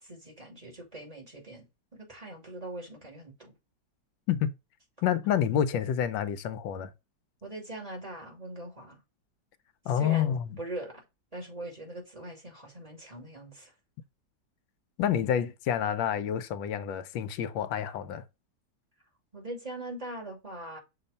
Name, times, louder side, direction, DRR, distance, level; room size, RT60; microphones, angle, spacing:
voice 1, 0.0-3.5 7.4-9.0 10.0-11.0 11.3-13.7 19.3-20.8, right 1 dB, 20° right, 2.4 m, -41 dB
voice 2, 5.0-6.9 9.9-10.5 15.0-18.2, left 9 dB, 90° left, 1.4 m, -28 dB
6.5 x 3.0 x 5.3 m
omnidirectional pair, 2.0 m